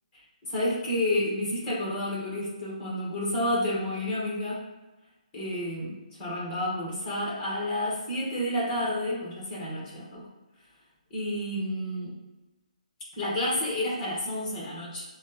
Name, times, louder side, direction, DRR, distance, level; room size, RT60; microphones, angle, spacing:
voice 1, 0.4-4.6 5.3-10.3 11.1-12.1 13.2-15.0, left 1 dB, 15° left, -6 dB, 1.1 m, -30 dB
5.9 x 2.1 x 2.8 m, 1.1 s
hypercardioid pair, 170°, 4 cm